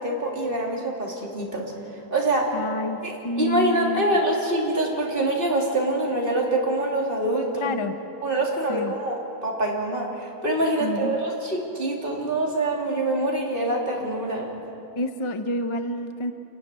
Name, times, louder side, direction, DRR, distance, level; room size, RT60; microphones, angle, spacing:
voice 1, 0.0-1.7 2.1-2.6 3.0-7.8 8.2-14.5, right 1 dB, 30° right, -2 dB, 3.3 m, -25 dB
voice 2, 2.5-3.0 3.2-4.2 7.6-8.0 8.7-8.9 10.8-11.2 15.0-16.3, left 1 dB, 35° left, 8 dB, 0.5 m, -28 dB
28.0 x 12.0 x 9.6 m, 2.8 s
omnidirectional pair, 1.7 m